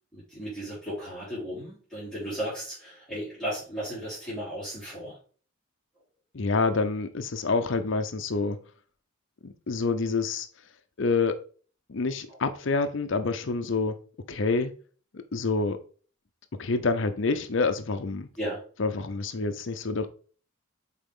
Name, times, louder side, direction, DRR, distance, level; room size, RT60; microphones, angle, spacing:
voice 1, 0.1-5.2 12.3-12.4 18.4-18.6, equal, ahead, 3.8 m, -35 dB
voice 2, 6.3-8.6 9.4-10.5 11.0-11.4 11.9-14.0 14.3-14.7 15.1-15.8 16.6-18.3 18.8-20.1, left 4 dB, 60° left, 0.6 m, -27 dB
7.2 x 4.5 x 3.7 m
head